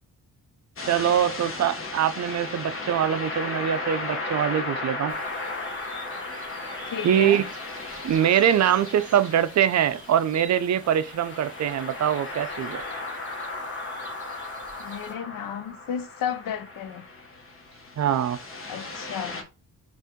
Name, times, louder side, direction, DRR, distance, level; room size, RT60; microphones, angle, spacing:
sound 1, 0.8-19.4, left 3 dB, 35° left, 1.1 m, -36 dB
voice 1, 0.9-5.2 7.0-7.4 8.0-12.8 18.0-18.4, right 10 dB, 50° right, 0.5 m, -23 dB
sound 2, 5.1-15.1, right 2 dB, 20° right, 2.1 m, -47 dB
voice 2, 6.9-7.4 14.8-17.1 18.7-19.4, left 8 dB, 65° left, 0.6 m, -33 dB
5.4 x 2.6 x 3.6 m
cardioid pair, 110°, 37 cm